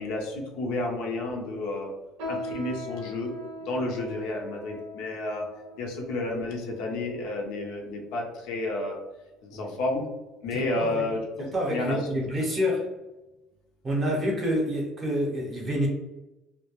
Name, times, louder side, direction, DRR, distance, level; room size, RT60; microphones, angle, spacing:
voice 1, 0.0-1.9 2.3-3.3 3.7-5.4 5.8-9.0 9.4-10.1 10.4-11.2 11.7-12.0, left 2 dB, 70° left, 0 dB, 0.6 m, -31 dB
sound 1, 2.2-7.9 8.5-8.7 9.4-9.7 10.1-10.3 11.0-11.1, equal, 80° right, 0.6 m, -41 dB
voice 2, 10.5-11.0 11.5-12.9 13.8-15.9, equal, 20° right, -1 dB, 0.6 m, -28 dB
2.2 x 2.1 x 2.9 m, 1.0 s
cardioid pair, 180°, 0 cm